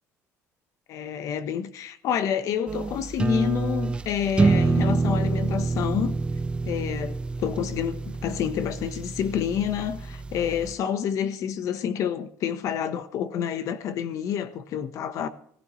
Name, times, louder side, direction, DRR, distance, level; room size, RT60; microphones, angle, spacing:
voice 1, 0.9-6.2 6.7-15.3, left 8 dB, 60° left, 1.2 m, -28 dB
sound 1, 2.7-10.7, right 3 dB, 15° right, 0.5 m, -27 dB
16.5 x 16.0 x 3.2 m
cardioid pair, 130°, 6 cm